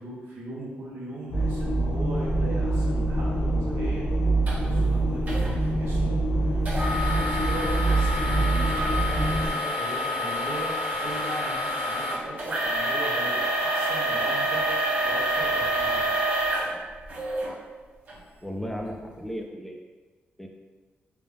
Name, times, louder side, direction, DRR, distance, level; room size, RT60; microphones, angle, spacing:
voice 1, 0.0-4.0 4.4-10.7 11.0-14.6 15.0-16.0, right 1 dB, 75° right, -6 dB, 0.9 m, -38 dB
sound 1, 1.3-9.5, right 2 dB, 60° left, 0.8 m, -25 dB
sound 2, 4.5-4.6 5.3-5.5 6.7-17.5 18.1-18.2 18.8-18.9, equal, 40° right, 1.0 m, -27 dB
voice 2, 18.4-19.8 20.4-20.5, equal, 5° left, 2 dB, 0.4 m, -35 dB
3.4 x 2.3 x 3.5 m, 1.3 s
wide cardioid pair, 135°, 4 cm